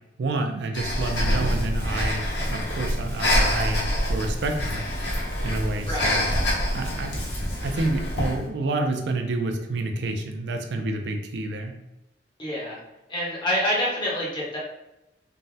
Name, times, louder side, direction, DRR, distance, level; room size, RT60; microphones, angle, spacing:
voice 1, 0.2-4.8 5.4-6.3 6.7-7.2 7.6-11.8, right 2 dB, 70° right, 4 dB, 0.4 m, -29 dB
Breathing, 0.7-8.4, equal, 85° left, 0.9 m, -26 dB
voice 2, 5.9-6.2 12.4-12.8 13.1-14.6, equal, 25° left, -6 dB, 1.0 m, -27 dB
3.4 x 2.1 x 2.6 m, 0.91 s
head